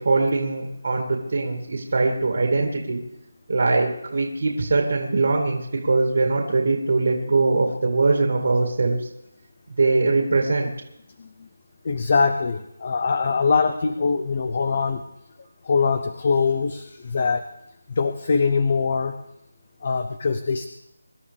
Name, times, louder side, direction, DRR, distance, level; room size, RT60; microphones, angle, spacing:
voice 1, 0.0-3.0 3.5-9.1 9.8-10.7, right 3 dB, 55° right, 2 dB, 2.2 m, -22 dB
voice 2, 11.8-15.0 15.6-17.4 18.0-19.1 19.8-20.7, left 5 dB, 35° left, 9 dB, 0.7 m, -22 dB
24.5 x 12.0 x 3.4 m, 0.84 s
figure-of-eight pair, 175°, 0 cm